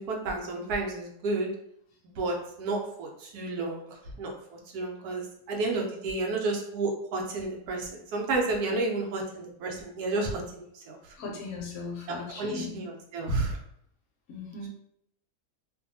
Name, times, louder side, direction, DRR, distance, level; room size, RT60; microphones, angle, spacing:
voice 1, 0.0-1.5 2.2-3.9 4.2-11.0 12.1-13.6, right 2 dB, 75° right, 0 dB, 1.1 m, -31 dB
voice 2, 11.1-12.9 14.3-14.7, left 4 dB, 70° left, -1 dB, 1.1 m, -38 dB
2.6 x 2.5 x 2.6 m, 0.72 s
omnidirectional pair, 1.7 m